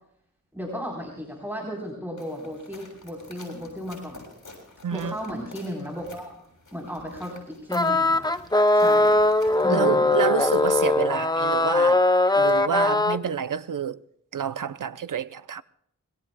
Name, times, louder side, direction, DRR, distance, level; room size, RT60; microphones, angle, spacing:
voice 1, 0.5-4.2 4.9-6.4 6.7-8.3 8.7-9.2 9.6-10.1, equal, 5° right, 4.0 m, -34 dB
sound 1, 2.2-9.8, left 2 dB, 70° left, 6.6 m, -49 dB
voice 2, 4.8-5.1 9.7-12.0 12.4-14.0 14.3-15.6, right 8 dB, 75° right, 0.7 m, -28 dB
sound 2, 7.7-13.2, left 2 dB, 10° left, 0.7 m, -20 dB
25.5 x 22.0 x 2.3 m
wide cardioid pair, 75°, 32 cm